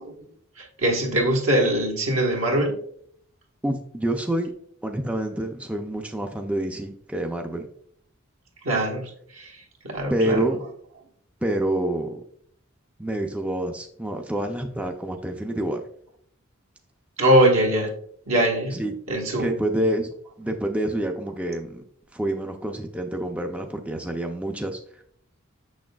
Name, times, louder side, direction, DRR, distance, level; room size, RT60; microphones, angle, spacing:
voice 1, 0.6-2.8 8.6-10.4 17.2-17.9 18.3-18.8 19.1-19.5, right 1 dB, 70° right, 1 dB, 1.3 m, -22 dB
voice 2, 3.6-4.5 4.8-7.7 10.1-10.6 11.4-12.2 13.0-15.8 18.7-18.9 19.4-21.8 22.1-24.8, right 1 dB, 5° right, 3 dB, 0.4 m, -27 dB
6.6 x 6.3 x 2.3 m, 0.65 s
head